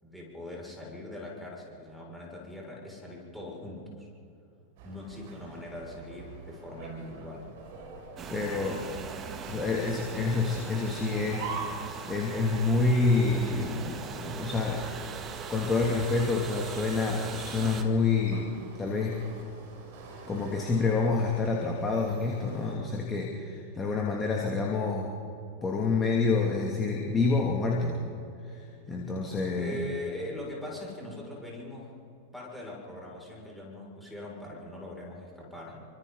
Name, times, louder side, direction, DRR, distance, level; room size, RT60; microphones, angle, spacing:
voice 1, 0.0-4.1 4.8-7.5 8.2-9.2 10.1-10.4 29.5-31.9 32.3-35.9, left 1 dB, ahead, -4 dB, 6.6 m, -41 dB
sound 1, 4.8-22.7, right 4 dB, 50° right, 4.7 m, -45 dB
sound 2, 8.2-17.8, right 6 dB, 25° right, 2.1 m, -40 dB
voice 2, 8.3-8.9 9.5-14.8 15.5-19.2 20.3-25.2 25.6-28.1 28.4-28.6 28.9-29.8, left 3 dB, 15° left, -2 dB, 2.9 m, -28 dB
30.0 x 25.5 x 4.2 m, 2.7 s
figure-of-eight pair, 90°, 0 cm